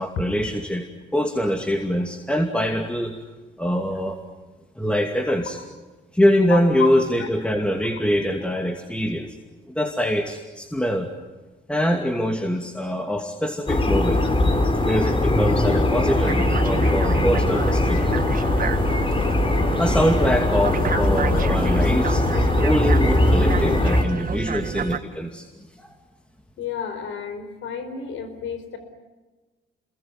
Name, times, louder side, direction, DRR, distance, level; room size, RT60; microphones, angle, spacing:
voice 1, 0.0-3.2 3.6-4.2 4.8-5.6 6.1-9.4 9.7-11.1 11.7-14.2 14.8-18.0 19.8-22.2 22.6-25.5 25.8-25.9, equal, 5° left, 4 dB, 2.5 m, -24 dB
voice 2, 6.5-6.9 7.2-7.3 17.5-17.6 20.9-21.0 26.6-28.8, left 7 dB, 80° left, 9 dB, 4.6 m, -31 dB
sound 1, 13.7-24.0, left 2 dB, 25° left, 3.8 m, -20 dB
sound 2, 16.3-25.0, right 7 dB, 45° right, 1.6 m, -30 dB
27.5 x 21.5 x 9.5 m, 1.2 s
cardioid pair, 90°, 20 cm